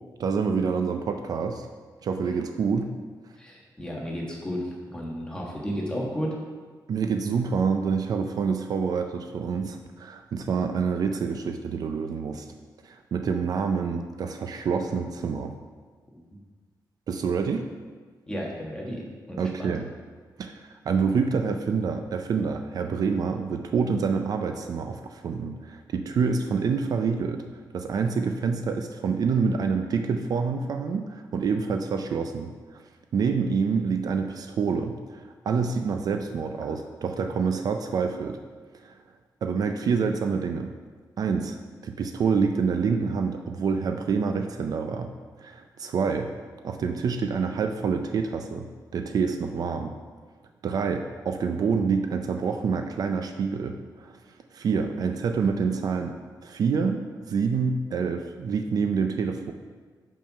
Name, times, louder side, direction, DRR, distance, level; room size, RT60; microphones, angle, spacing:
voice 1, 0.2-1.7 2.0-2.9 6.9-12.5 12.8-15.5 17.1-17.6 19.4-19.9 20.4-27.5 27.7-32.8 33.1-38.4 38.8-39.0 39.4-40.7 41.2-41.6 41.8-45.1 45.4-46.3 46.6-49.9 50.6-54.1 54.5-57.0 57.3-59.5, right 5 dB, 55° right, 6 dB, 0.4 m, -27 dB
voice 2, 3.4-6.3 16.1-16.2 18.3-19.7, equal, 10° left, -3 dB, 1.3 m, -33 dB
5.4 x 5.3 x 5.6 m, 1.5 s
wide cardioid pair, 165°, 8 cm